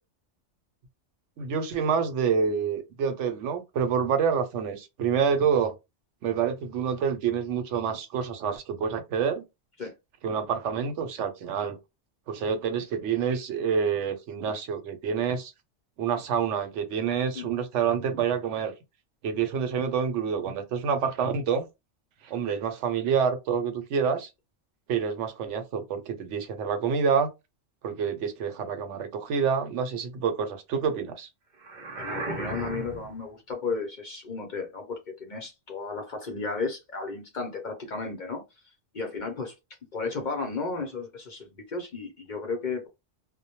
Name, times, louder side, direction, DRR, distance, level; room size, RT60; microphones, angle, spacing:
voice 1, 1.4-5.7 6.2-9.4 10.2-11.8 12.3-15.5 16.0-18.7 19.2-21.7 22.2-24.3 24.9-27.3 27.8-31.3, right 6 dB, 80° right, 0.9 m, -27 dB
sound 1, 31.6-33.2, right 2 dB, 55° right, 0.6 m, -35 dB
voice 2, 32.0-38.4 38.9-39.5 39.9-42.9, left 4 dB, 50° left, 0.6 m, -34 dB
2.1 x 2.1 x 2.8 m
omnidirectional pair, 1.2 m